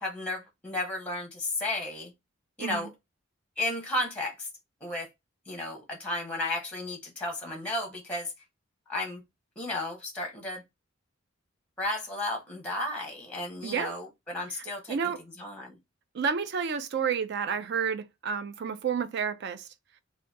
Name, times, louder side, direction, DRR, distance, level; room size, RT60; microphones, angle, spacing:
voice 1, 0.0-2.1 2.6-2.9 3.6-4.5 4.8-5.1 5.5-8.3 8.9-9.2 9.6-10.6 11.8-15.1 15.4-15.8, left 1 dB, 5° left, 0.8 m, -33 dB
voice 2, 13.6-13.9 14.9-15.2 16.1-19.6, right 6 dB, 55° right, 0.4 m, -30 dB
2.8 x 2.2 x 3.4 m
head